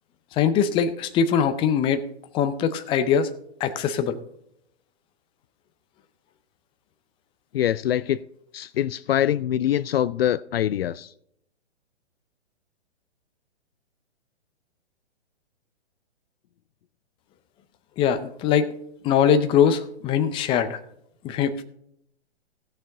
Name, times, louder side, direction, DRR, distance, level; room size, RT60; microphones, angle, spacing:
voice 1, 0.3-2.1 2.3-3.3 3.6-4.2 18.0-18.7 19.0-20.8 21.2-21.6, left 7 dB, 15° left, 11 dB, 0.6 m, -22 dB
voice 2, 7.5-8.2 8.5-11.1, left 11 dB, 60° left, 18 dB, 0.4 m, -24 dB
17.5 x 6.4 x 3.8 m, 0.73 s
hypercardioid pair, 125°, 33 cm